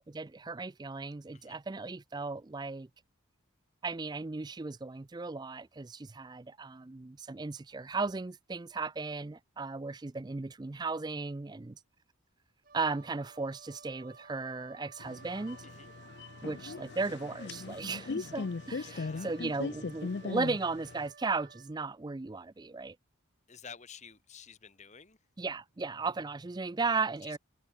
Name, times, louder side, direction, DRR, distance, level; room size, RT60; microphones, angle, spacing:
voice 1, 0.0-2.9 3.8-11.7 12.7-15.6 16.4-23.0 25.4-27.4, right 4 dB, 20° right, 0.4 m, -36 dB
Wind instrument woodwind instrument, 12.6-21.7, right 5 dB, 40° right, 1.3 m, -56 dB
sound 1, 15.0-21.1, left 4 dB, 50° left, 0.5 m, -39 dB
voice 2, 18.8-19.3 23.5-25.2 27.2-27.4, left 6 dB, 35° left, 1.4 m, -51 dB
head